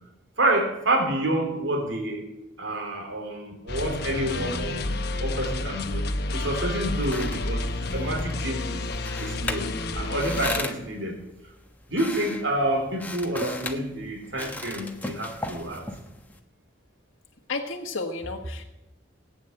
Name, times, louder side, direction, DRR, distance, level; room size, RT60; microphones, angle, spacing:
voice 1, 0.4-2.3 2.6-4.9 5.2-7.7 7.9-8.8 9.2-9.7 9.9-11.2 11.9-15.8, right 1 dB, 70° right, 2 dB, 3.4 m, -28 dB
sound 1, 3.7-10.6, left 2 dB, 55° left, 1.0 m, -30 dB
sound 2, 6.7-16.4, left 2 dB, 10° left, 1.3 m, -38 dB
voice 2, 17.5-18.6, left 3 dB, 85° left, 2 dB, 1.5 m, -32 dB
19.0 x 9.4 x 7.8 m, 0.94 s
head